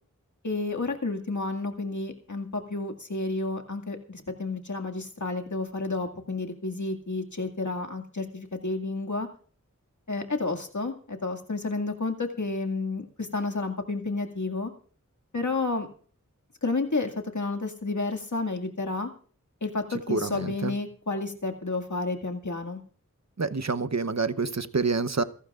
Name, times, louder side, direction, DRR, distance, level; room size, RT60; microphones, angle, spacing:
voice 1, 0.4-9.3 10.1-14.7 15.3-15.9 16.6-19.1 19.6-22.8, left 3 dB, 65° left, 3 dB, 2.2 m, -31 dB
voice 2, 19.9-20.7 23.4-25.2, right 4 dB, 55° right, 13 dB, 0.9 m, -28 dB
28.0 x 11.5 x 2.5 m, 0.44 s
wide cardioid pair, 45°, 31 cm